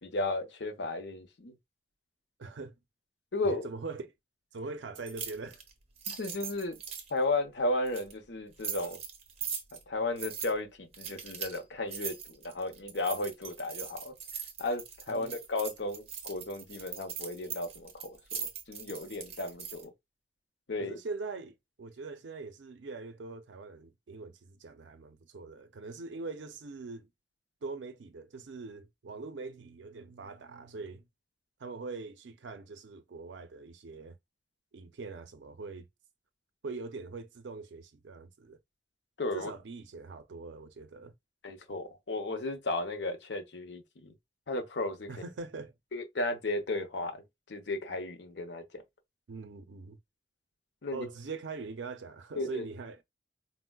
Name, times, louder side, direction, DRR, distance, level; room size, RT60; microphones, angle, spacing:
voice 1, 0.0-1.5 3.3-3.6 6.1-6.8 7.1-9.0 9.9-14.1 14.6-19.9 20.7-21.0 39.2-39.5 41.4-44.1 44.5-45.1 45.9-47.2 47.5-48.8 50.8-51.1 52.4-52.6, left 2 dB, 70° left, 0.7 m, -34 dB
voice 2, 2.4-2.8 3.4-4.1 4.5-5.6 15.1-15.3 20.8-27.1 27.6-31.0 31.6-34.2 34.7-35.8 36.6-38.6 39.3-41.1 45.1-45.7 49.3-50.0 50.9-53.0, right 4 dB, 85° right, 0.5 m, -42 dB
sound 1, 4.9-7.1 7.9-8.1 8.6-9.8 10.2-10.5 10.9-11.6 11.9-19.8, right 7 dB, 35° right, 0.6 m, -40 dB
4.3 x 2.0 x 2.2 m
head